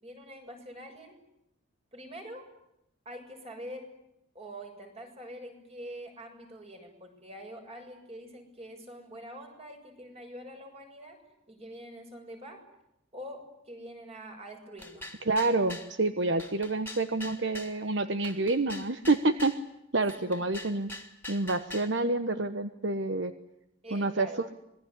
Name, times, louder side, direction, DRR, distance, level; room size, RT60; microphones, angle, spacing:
voice 1, 0.0-1.2 1.9-2.5 3.1-3.9 4.3-11.2 11.5-12.6 13.1-15.0 20.3-20.4 23.8-24.4, equal, 30° right, 4 dB, 7.0 m, -45 dB
sound 1, 14.8-15.9 16.4-17.8 18.2-19.6 20.1-21.9, left 2 dB, 10° left, 3.0 m, -43 dB
voice 2, 15.3-19.5 19.9-20.9 21.3-23.3 23.9-24.3, right 2 dB, 60° right, 10 dB, 1.2 m, -28 dB
26.0 x 21.0 x 10.0 m, 0.83 s
head